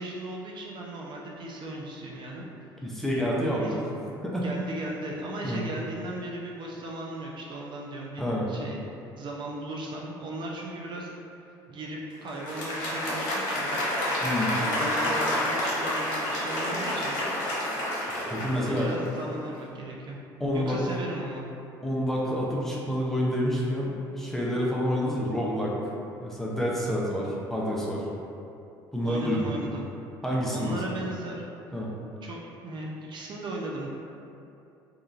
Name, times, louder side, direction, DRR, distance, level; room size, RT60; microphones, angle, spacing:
voice 1, 0.0-2.5 3.6-3.8 4.4-8.8 9.2-11.1 11.7-13.8 14.5-17.2 18.4-20.2 20.5-21.5 29.0-29.9 30.5-31.5 32.2-33.9, right 1 dB, 45° right, -3 dB, 0.4 m, -37 dB
voice 2, 2.8-3.8 4.2-4.5 5.4-5.6 8.2-8.5 14.2-14.5 18.3-18.9 20.4-20.8 21.8-25.7 26.2-28.0 28.9-29.5 30.2-30.8 31.7-31.9, equal, 5° left, -5 dB, 0.6 m, -28 dB
Applause, 12.3-19.3, left 1 dB, 80° left, 0.8 m, -29 dB
2.9 x 2.3 x 2.4 m, 2.7 s
hypercardioid pair, 70°, 11 cm